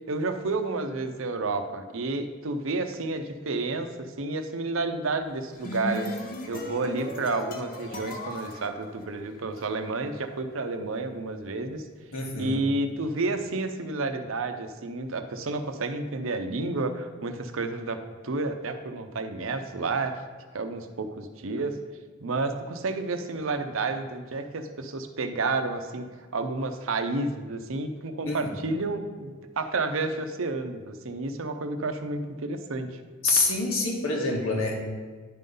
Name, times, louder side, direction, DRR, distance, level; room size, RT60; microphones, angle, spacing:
voice 1, 0.1-3.9 4.2-6.1 6.5-11.9 12.3-18.0 18.2-20.1 20.5-21.7 22.2-26.0 26.3-32.9, right 3 dB, 70° right, 8 dB, 0.7 m, -30 dB
sound 1, 5.3-9.6, left 1 dB, 45° left, 0.9 m, -37 dB
voice 2, 12.1-12.6 28.2-28.5 33.2-34.8, left 3 dB, 75° left, 0 dB, 1.5 m, -26 dB
10.5 x 3.8 x 5.4 m, 1.5 s
head